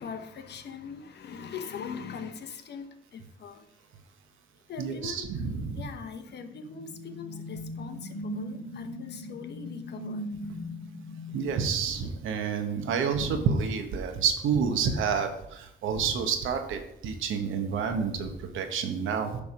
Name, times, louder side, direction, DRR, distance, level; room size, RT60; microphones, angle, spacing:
voice 1, 0.0-3.7 4.7-5.4 5.7-10.3, left 6 dB, 60° left, 1.0 m, -41 dB
voice 2, 4.8-5.8 11.3-19.4, right 6 dB, 85° right, 1.2 m, -29 dB
sound 1, 6.3-12.7, left 1 dB, 40° left, 2.4 m, -40 dB
9.9 x 3.5 x 6.1 m
cardioid pair, 90°, 20 cm